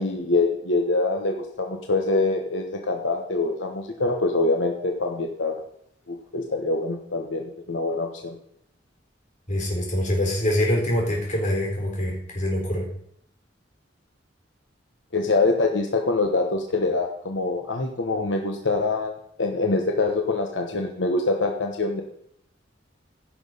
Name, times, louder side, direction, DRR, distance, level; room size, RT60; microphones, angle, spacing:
voice 1, 0.0-5.6 6.1-8.3 15.1-19.1 19.4-22.0, left 3 dB, 80° left, 3 dB, 1.2 m, -24 dB
voice 2, 9.5-12.9, left 1 dB, 40° left, -1 dB, 4.2 m, -24 dB
15.5 x 6.2 x 5.5 m, 0.71 s
head